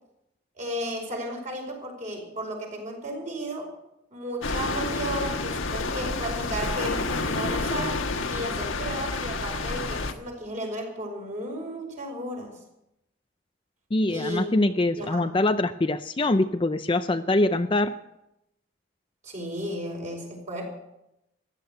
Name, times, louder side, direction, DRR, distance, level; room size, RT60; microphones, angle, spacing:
voice 1, 0.6-3.7 4.1-8.0 8.3-12.6 14.1-14.6 15.0-15.3 19.2-20.6, right 1 dB, 40° right, 1 dB, 5.0 m, -34 dB
sound 1, 4.4-10.1, left 3 dB, 85° left, 1.4 m, -29 dB
voice 2, 13.9-17.9, left 2 dB, 25° left, 10 dB, 0.5 m, -24 dB
15.5 x 11.0 x 8.1 m, 0.87 s
head